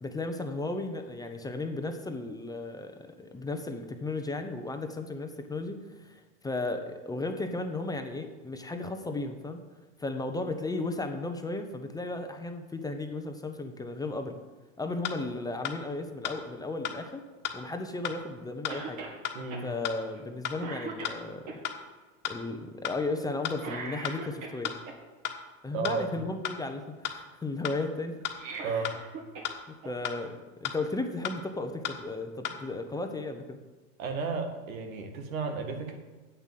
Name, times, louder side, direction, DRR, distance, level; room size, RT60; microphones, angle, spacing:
voice 1, 0.0-6.1 6.4-9.6 10.0-14.4 14.8-17.2 17.5-19.0 19.6-21.5 22.3-24.7 25.6-28.2 29.8-33.6, left 2 dB, 10° left, 5 dB, 0.8 m, -35 dB
sound 1, 15.0-15.1 15.6-15.8 16.2-16.3 16.8-17.0 17.4-17.5 18.0-18.2 18.6-18.8 19.2-19.4 19.8-20.0 20.4-20.6 21.0-21.2 21.6-21.8 22.2-22.3 22.8-23.0 23.4-23.5 24.0-24.2 24.6-24.8 25.2-25.4 25.8-26.0 26.4-26.6 27.0-27.1 27.6-27.8 28.2-28.4 28.8-29.0 29.4-29.5 30.0-30.2 30.6-30.7 31.2-31.4 31.8-32.0 32.4-32.6, left 12 dB, 50° left, 1.4 m, -33 dB
Cough, 18.7-19.2 19.5-19.7 20.1-20.3 20.6-21.6 23.6-24.9 28.2-29.5 29.8-29.9 31.0-31.1, right 4 dB, 45° right, 2.4 m, -40 dB
voice 2, 19.3-19.7 25.7-26.3 28.6-29.0 34.0-36.0, right 4 dB, 85° right, 5 dB, 1.9 m, -33 dB
8.1 x 7.3 x 7.5 m, 1.3 s
supercardioid pair, 120°, 40 cm